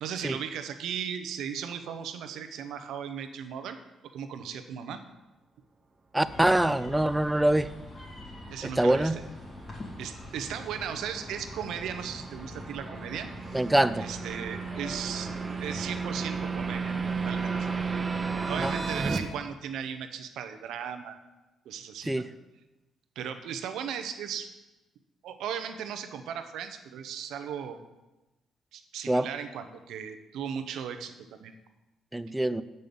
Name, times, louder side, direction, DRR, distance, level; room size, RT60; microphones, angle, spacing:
voice 1, 0.0-3.8 4.1-5.0 8.5-9.2 10.0-13.3 14.0-15.3 15.6-17.0 17.2-17.5 18.5-21.2 21.7-22.2 23.2-24.5 25.2-27.8 28.7-31.5, right 8 dB, 80° right, 8 dB, 0.8 m, -37 dB
voice 2, 6.1-7.7 8.8-9.2 13.5-14.1 18.6-18.7 22.1-22.2 29.1-29.3 32.1-32.6, right 1 dB, 10° right, 14 dB, 0.4 m, -24 dB
sound 1, 6.2-18.7, left 2 dB, 45° left, 2.8 m, -44 dB
sound 2, 7.7-19.2, right 5 dB, 30° right, 0.9 m, -35 dB
7.7 x 5.4 x 6.9 m, 1.1 s
cardioid pair, 90°, 0 cm